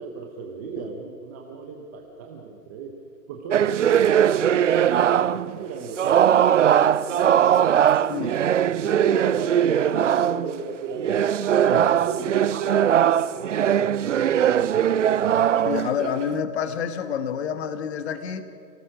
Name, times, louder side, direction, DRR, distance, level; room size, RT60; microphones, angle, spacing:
voice 1, 0.0-3.0 3.3-6.0 6.3-7.6 8.0-8.1 8.4-11.4 11.7-13.2 13.5-15.7, right 5 dB, 10° right, 1 dB, 0.6 m, -35 dB
sound 1, 3.5-5.6 6.0-10.5 10.9-16.4, right 9 dB, 50° right, 0.5 m, -20 dB
voice 2, 15.6-18.4, left 7 dB, 40° left, 10 dB, 1.3 m, -28 dB
29.0 x 18.5 x 6.1 m, 2.4 s
hypercardioid pair, 145°, 50 cm